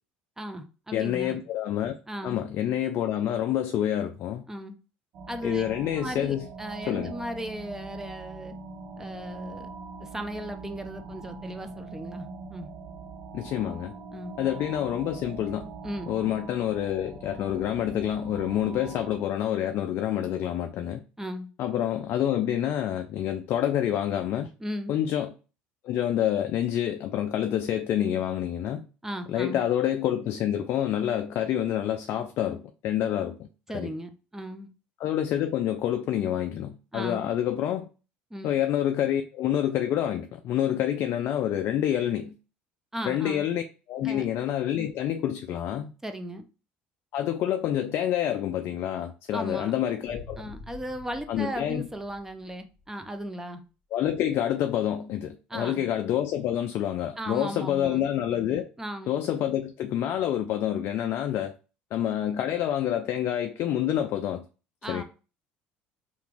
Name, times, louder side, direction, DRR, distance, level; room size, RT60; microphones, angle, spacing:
voice 1, 0.4-1.4 2.1-2.4 4.5-4.8 5.3-5.6 6.0-8.5 9.0-9.7 10.0-12.7 14.1-14.4 15.8-16.1 21.2-21.5 24.6-24.9 29.0-29.6 33.7-34.7 36.9-37.3 38.3-38.6 42.9-43.5 44.0-44.2 46.0-46.4 49.3-49.7 50.4-53.6 55.5-55.9 57.2-58.0 58.8-59.1 64.8-65.0, equal, 10° right, 0.6 m, -36 dB
voice 2, 0.9-1.9 2.2-4.4 5.4-6.5 6.9-7.1 13.3-13.9 14.4-15.7 16.1-21.0 21.6-24.5 24.9-25.3 25.8-28.9 29.3-33.4 33.7-33.9 35.0-37.9 38.4-42.3 43.1-43.6 43.9-45.9 47.1-50.5 51.3-51.9 53.9-58.7 59.1-61.5 61.9-64.4 64.9-65.0, left 11 dB, 55° left, 0.3 m, -27 dB
sound 1, 5.1-19.2, right 4 dB, 65° right, 0.6 m, -42 dB
Boom, 50.0-53.0, left 2 dB, 5° left, 1.2 m, -47 dB
2.8 x 2.5 x 3.4 m
supercardioid pair, 90°, 5 cm